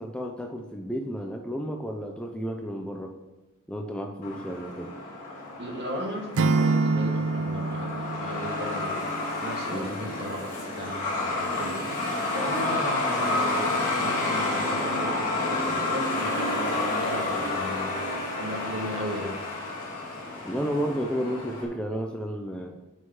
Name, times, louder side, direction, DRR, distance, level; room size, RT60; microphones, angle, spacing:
voice 1, 0.0-3.1 3.7-4.9 9.7-10.0 20.4-22.7, equal, 5° left, 2 dB, 0.6 m, -32 dB
Truck, 4.2-21.6, left 2 dB, 40° left, 2.5 m, -30 dB
voice 2, 5.6-11.7 12.3-19.3, equal, 50° right, -1 dB, 2.0 m, -36 dB
Acoustic guitar / Strum, 6.3-9.4, right 3 dB, 70° right, 0.5 m, -26 dB
6.5 x 5.6 x 7.2 m, 1.1 s
head